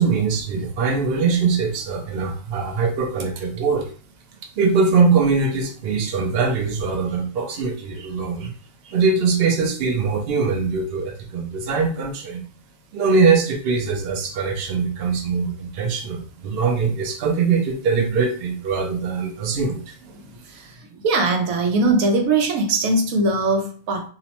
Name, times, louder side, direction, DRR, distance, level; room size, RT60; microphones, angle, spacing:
voice 1, 0.0-3.9 4.6-8.5 8.8-12.4 12.9-19.9, right 4 dB, 60° right, 2 dB, 0.7 m, -22 dB
voice 2, 20.1-24.1, right 2 dB, 80° right, 3 dB, 1.0 m, -21 dB
2.9 x 2.0 x 2.8 m, 0.41 s
omnidirectional pair, 1.4 m